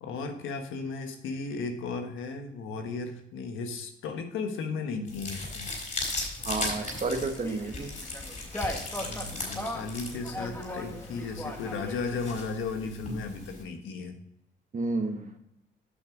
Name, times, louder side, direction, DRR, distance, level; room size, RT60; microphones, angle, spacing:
voice 1, 0.0-5.7 9.0-14.2, left 4 dB, 85° left, 6 dB, 1.4 m, -35 dB
sound 1, 5.1-13.6, left 2 dB, 40° left, 4.0 m, -38 dB
sound 2, 6.4-12.4, left 1 dB, 10° left, 1.6 m, -39 dB
voice 2, 6.4-7.9 14.7-15.3, right 3 dB, 40° right, 6 dB, 1.4 m, -31 dB
8.6 x 5.9 x 5.1 m, 0.80 s
cardioid pair, 90°, 20 cm